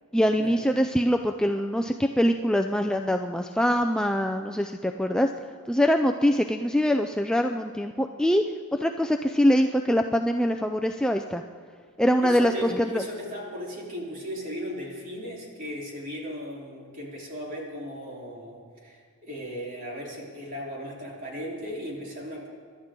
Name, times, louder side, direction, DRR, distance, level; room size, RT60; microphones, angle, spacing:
voice 1, 0.1-5.3 5.7-8.4 8.7-11.4 12.0-13.0, equal, 5° left, 5 dB, 0.4 m, -23 dB
voice 2, 12.2-22.5, equal, 40° right, -3 dB, 3.7 m, -37 dB
26.5 x 12.0 x 3.8 m, 2.1 s
head